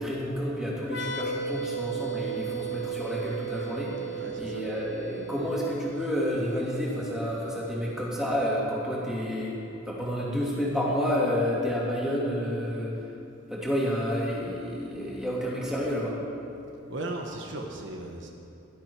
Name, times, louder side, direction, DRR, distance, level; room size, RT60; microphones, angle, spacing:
voice 1, 0.0-9.6 9.9-13.0 13.5-16.1, equal, 5° right, -6 dB, 2.6 m, -30 dB
sound 1, 0.8-8.4, right 6 dB, 55° left, 0.9 m, -36 dB
voice 2, 4.2-4.6 16.9-18.3, right 2 dB, 60° right, 1 dB, 1.1 m, -36 dB
17.5 x 12.0 x 4.7 m, 2.8 s
head